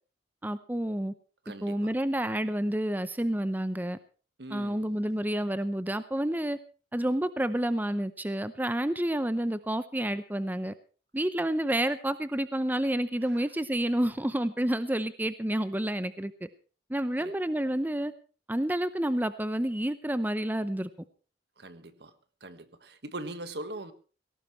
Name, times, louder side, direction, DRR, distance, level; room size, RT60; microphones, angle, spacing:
voice 1, 0.4-1.1 1.6-4.0 4.5-6.6 6.9-10.7 11.1-16.5 16.9-18.1 18.5-20.9, right 1 dB, 10° right, 0.7 m, -29 dB
voice 2, 1.4-1.9 4.4-5.0 13.2-13.5 17.2-17.3 21.6-22.1 22.4-23.9, right 2 dB, 65° right, 1.5 m, -41 dB
18.5 x 17.5 x 3.2 m
head